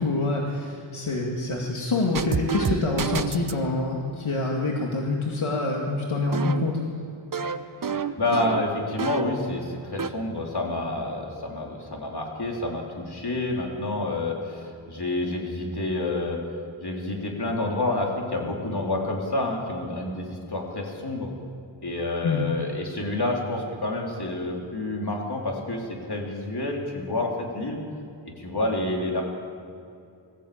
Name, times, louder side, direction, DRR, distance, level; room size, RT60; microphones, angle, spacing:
voice 1, 0.0-6.8 22.2-22.4, left 2 dB, 70° left, -1 dB, 2.3 m, -26 dB
sound 1, 2.1-3.6 6.3-9.5 9.8-10.1, right 5 dB, 40° right, 0.9 m, -29 dB
voice 2, 7.8-16.4 16.8-21.3 21.8-27.8 28.4-29.2, left 2 dB, 50° left, -1 dB, 3.9 m, -29 dB
21.0 x 14.5 x 8.7 m, 2.6 s
wide cardioid pair, 70°, 50 cm